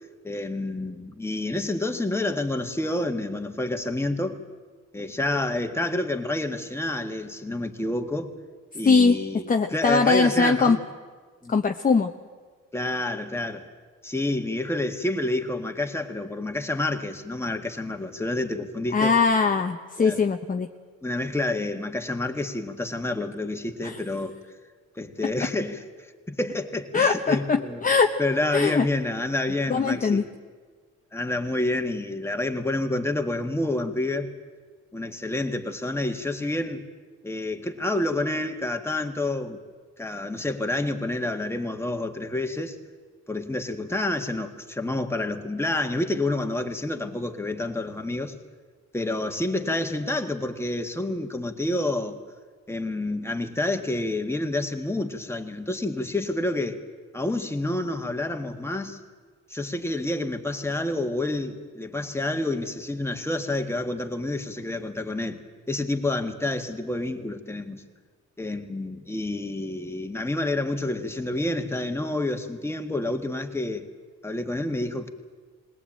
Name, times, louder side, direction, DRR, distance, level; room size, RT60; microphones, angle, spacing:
voice 1, 0.2-4.4 4.9-8.3 8.7-9.4 9.7-10.8 11.4-11.6 12.7-13.7 14.0-19.1 20.0-20.2 21.0-24.4 25.0-27.9 28.2-30.3 31.1-34.3 34.9-36.8 37.2-39.6 40.0-42.8 43.3-48.4 48.9-52.2 52.7-56.8 57.1-59.0 59.5-65.4 65.7-67.8 68.4-73.9 74.2-75.1, left 2 dB, 10° left, 1.8 m, -28 dB
voice 2, 8.8-9.2 9.5-10.8 11.5-12.1 18.9-20.7 23.8-24.0 26.9-28.2 28.5-28.9 29.7-30.2, left 4 dB, 25° left, 0.9 m, -21 dB
21.0 x 18.5 x 8.8 m
cardioid pair, 90°, 30 cm